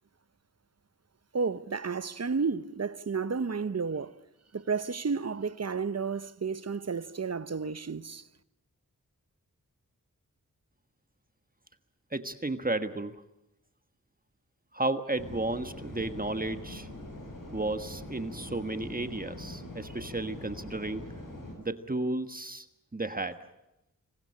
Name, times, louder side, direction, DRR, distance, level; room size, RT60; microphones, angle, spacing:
voice 1, 1.3-4.2 4.5-8.3, right 5 dB, 45° right, 1.0 m, -32 dB
voice 2, 12.1-13.2 14.7-16.9 17.5-21.1 21.6-22.7 22.9-23.4, right 2 dB, 25° right, 1.4 m, -33 dB
sound 1, 15.2-21.6, left 1 dB, 70° left, 6.9 m, -43 dB
26.0 x 21.0 x 8.5 m
cardioid pair, 50°, 34 cm